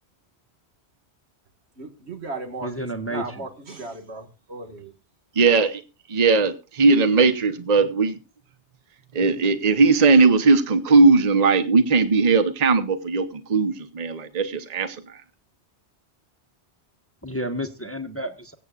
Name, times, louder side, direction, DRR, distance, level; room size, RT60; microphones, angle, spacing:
voice 1, 1.8-4.9, right 3 dB, 75° right, 2.1 m, -36 dB
voice 2, 2.6-3.2 17.2-18.5, equal, 15° left, 0.9 m, -30 dB
voice 3, 5.4-5.8 6.1-8.2 9.1-15.0, right 4 dB, 40° right, 1.0 m, -18 dB
23.0 x 8.5 x 2.4 m
omnidirectional pair, 1.1 m